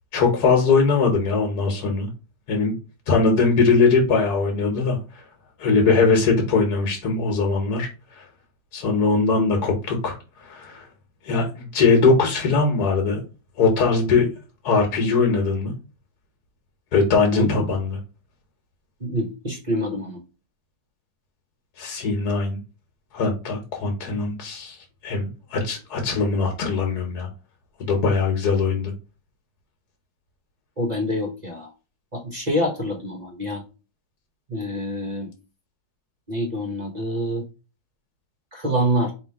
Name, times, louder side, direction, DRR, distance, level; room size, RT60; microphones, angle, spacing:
voice 1, 0.1-2.1 2.5-2.7 3.1-5.0 5.6-7.9 8.2-8.3 8.7-10.8 11.2-13.2 13.6-14.3 14.6-15.7 16.9-18.0 21.8-22.6 23.1-24.8 25.0-27.3 27.8-28.9, left 4 dB, 75° left, 2 dB, 1.5 m, -21 dB
voice 2, 17.3-17.7 19.0-20.2 30.8-31.7 32.1-33.6 34.5-35.3 36.3-37.4 38.5-39.1, equal, 35° right, 1 dB, 0.8 m, -26 dB
3.3 x 2.8 x 4.5 m, 0.31 s
omnidirectional pair, 1.7 m